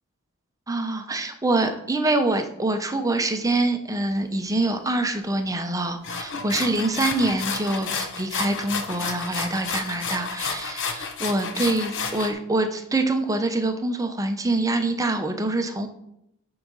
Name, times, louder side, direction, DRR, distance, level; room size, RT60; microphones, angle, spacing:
voice 1, 0.7-15.9, right 2 dB, 15° right, 7 dB, 0.7 m, -25 dB
sound 1, 6.0-12.3, left 5 dB, 55° left, 0.9 m, -31 dB
8.5 x 4.8 x 5.5 m, 0.79 s
head